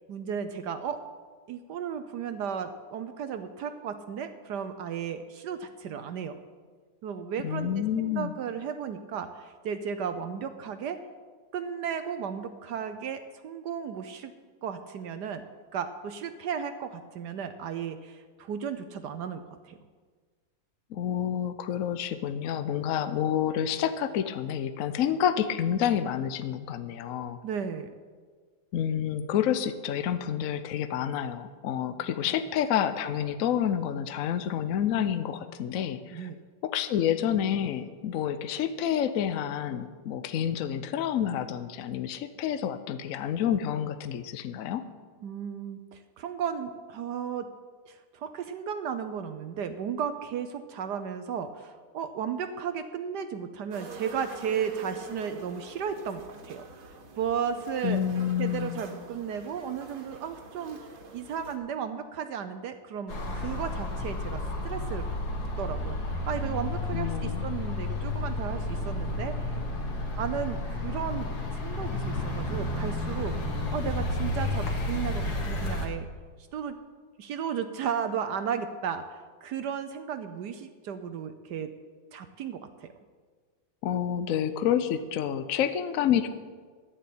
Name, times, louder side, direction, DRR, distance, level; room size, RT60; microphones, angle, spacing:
voice 1, 0.1-1.0 1.5-6.4 7.0-11.0 11.5-14.3 14.6-15.4 15.7-19.8 27.4-27.9 32.2-32.4 36.1-36.4 45.2-47.5 47.9-56.7 57.2-58.0 58.4-60.8 61.1-65.1 65.6-69.6 70.2-73.3 73.7-76.1 76.5-76.8 77.2-81.7 82.1-82.9, right 7 dB, 65° right, 9 dB, 1.2 m, -34 dB
voice 2, 7.4-8.3 20.9-27.4 28.7-36.3 36.6-44.8 57.8-58.8 66.9-67.5 83.8-86.3, left 9 dB, 75° left, 10 dB, 0.7 m, -29 dB
sound 1, 53.7-61.6, right 3 dB, 85° right, 2.4 m, -45 dB
sound 2, 63.1-75.9, left 2 dB, 55° left, 2.1 m, -31 dB
12.0 x 7.6 x 8.5 m, 1.5 s
omnidirectional pair, 2.2 m